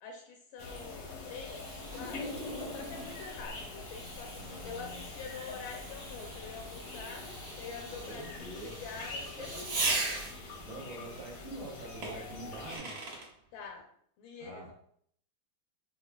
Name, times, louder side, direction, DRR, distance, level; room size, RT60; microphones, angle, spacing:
voice 1, 0.0-2.4 2.7-7.3 7.6-10.0 10.7-10.8 13.5-13.9 14.2-14.7, left 5 dB, 85° left, 1 dB, 1.5 m, -46 dB
sound 1, 0.6-12.8, left 3 dB, 65° left, 0.8 m, -44 dB
Fireworks, 0.7-10.6 12.0-13.3, right 3 dB, 55° right, 1.3 m, -40 dB
voice 2, 4.3-5.0 7.8-8.7 10.6-12.9 14.4-14.7, right 2 dB, 70° right, -2 dB, 1.6 m, -45 dB
5.2 x 2.4 x 2.2 m, 0.64 s
omnidirectional pair, 2.3 m